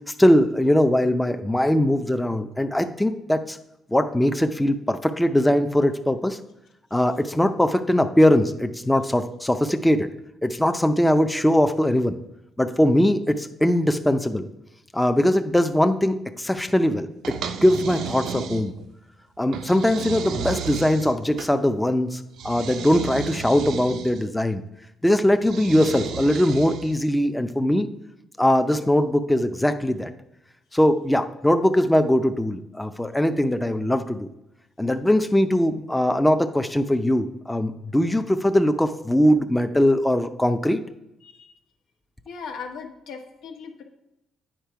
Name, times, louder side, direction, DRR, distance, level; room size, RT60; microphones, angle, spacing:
voice 1, 0.2-3.6 3.9-6.4 6.9-10.1 10.4-12.2 12.6-14.5 14.9-17.1 17.6-18.7 19.4-24.6 25.0-27.9 28.4-30.1 30.7-34.3 34.8-40.8, left 1 dB, 10° left, 7 dB, 0.5 m, -21 dB
sound 1, 17.2-18.9 19.5-21.5 22.4-24.2 25.4-27.0, right 7 dB, 80° right, 0.5 m, -33 dB
voice 2, 41.2-41.6 42.2-43.8, left 5 dB, 85° left, 3 dB, 1.2 m, -38 dB
8.9 x 4.8 x 4.6 m, 0.87 s
cardioid pair, 90°, 0 cm